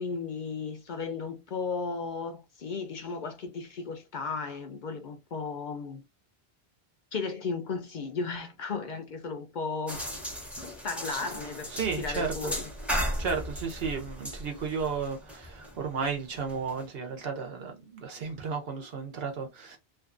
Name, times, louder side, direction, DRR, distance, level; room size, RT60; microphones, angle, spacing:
voice 1, 0.0-6.0 7.1-10.0 10.8-11.7 12.0-12.7, left 4 dB, 60° left, 0.6 m, -35 dB
sound 1, 9.9-16.8, equal, ahead, 0.6 m, -36 dB
voice 2, 11.7-12.5 13.2-19.8, right 5 dB, 70° right, 1.1 m, -33 dB
2.5 x 2.5 x 2.4 m
omnidirectional pair, 1.1 m